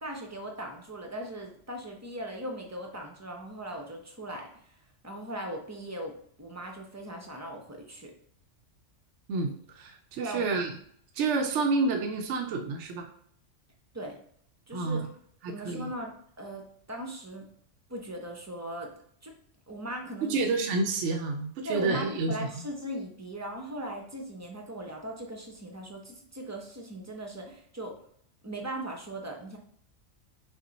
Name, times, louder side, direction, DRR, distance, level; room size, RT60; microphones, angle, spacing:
voice 1, 0.0-4.7 5.0-6.1 6.4-8.1 10.2-10.5 13.9-14.2 14.7-15.0 15.5-17.5 17.9-18.9 19.2-19.3 19.7-20.4 21.6-28.0 28.4-29.6, right 1 dB, 20° right, 2 dB, 0.5 m, -39 dB
voice 2, 9.3-10.7 11.1-13.1 14.7-15.1 15.4-15.9 20.2-22.5, right 3 dB, 75° right, 4 dB, 0.9 m, -29 dB
5.8 x 2.1 x 3.9 m, 0.64 s
omnidirectional pair, 1.3 m